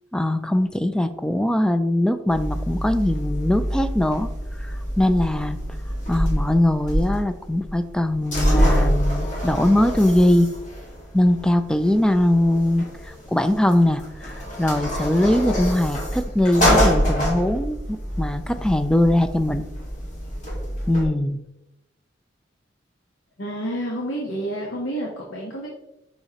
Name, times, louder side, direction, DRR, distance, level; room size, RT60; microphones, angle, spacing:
voice 1, 0.1-4.3 4.6-5.6 6.1-10.5 11.1-19.7 20.9-21.4, left 1 dB, 5° left, 10 dB, 0.3 m, -21 dB
sound 1, 2.3-21.1, equal, 40° left, 1.9 m, -26 dB
voice 2, 23.4-25.7, right 1 dB, 85° left, -1 dB, 1.2 m, -29 dB
6.8 x 5.7 x 2.9 m, 0.89 s
head